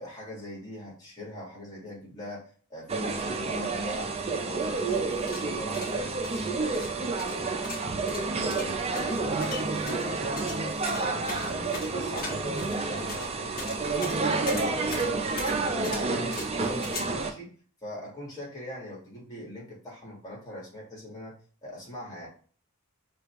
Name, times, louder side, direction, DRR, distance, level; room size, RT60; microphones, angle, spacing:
voice 1, 0.0-7.6 8.1-14.7 15.0-17.5 17.8-21.3 21.6-22.3, left 1 dB, 20° left, -5 dB, 1.6 m, -42 dB
sound 1, 2.9-17.3, right 3 dB, 30° right, 0.5 m, -29 dB
sound 2, 5.1-17.0, left 2 dB, 45° left, 1.1 m, -40 dB
5.1 x 2.4 x 3.0 m, 0.42 s
head